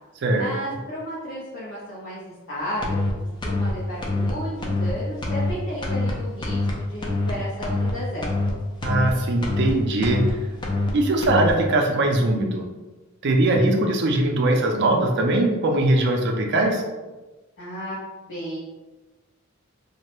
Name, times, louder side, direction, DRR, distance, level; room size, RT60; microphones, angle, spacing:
voice 1, 0.3-3.0 3.4-8.3 17.6-18.0 18.3-18.6, equal, 65° left, -9 dB, 0.6 m, -33 dB
sound 1, 2.8-3.1 3.4-3.7 4.0-4.3 4.6-4.9 5.2-5.5 5.8-6.1 6.4-6.7 7.0-7.3 7.6-7.9 8.2-8.5 8.8-9.1 9.4-9.7 10.0-10.3 10.6-10.9 11.2-11.5, left 2 dB, 20° left, 0.4 m, -24 dB
voice 2, 8.8-10.4 10.9-12.6 13.2-16.8, right 2 dB, 55° right, 2 dB, 0.4 m, -21 dB
2.2 x 2.0 x 2.9 m, 1.2 s
head